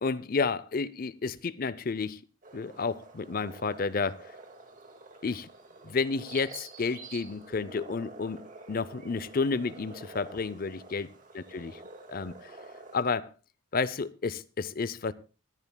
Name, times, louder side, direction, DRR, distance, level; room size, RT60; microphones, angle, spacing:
voice 1, 0.0-2.2 2.5-4.2 5.2-5.5 5.8-8.4 8.7-11.7 12.1-12.5 12.9-13.3 13.7-15.1, left 4 dB, 45° left, 0.5 m, -31 dB
sound 1, 2.4-13.0, right 3 dB, 40° right, 2.1 m, -48 dB
24.5 x 10.5 x 2.2 m
head